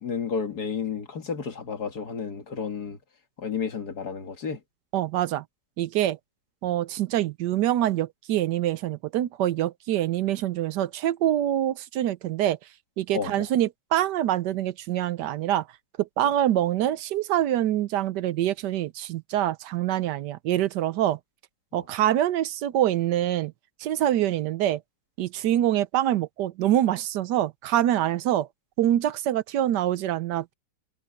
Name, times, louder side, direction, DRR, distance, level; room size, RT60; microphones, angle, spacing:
voice 1, 0.0-3.0 3.4-4.6 13.1-13.3 21.7-21.8, left 6 dB, 65° left, 2.3 m, -31 dB
voice 2, 4.9-5.4 5.8-6.2 6.6-12.6 13.0-15.7 16.0-21.2 21.7-23.5 23.8-24.8 25.2-28.5 28.8-30.5, right 12 dB, 80° right, 1.3 m, -25 dB
omnidirectional pair, 1.8 m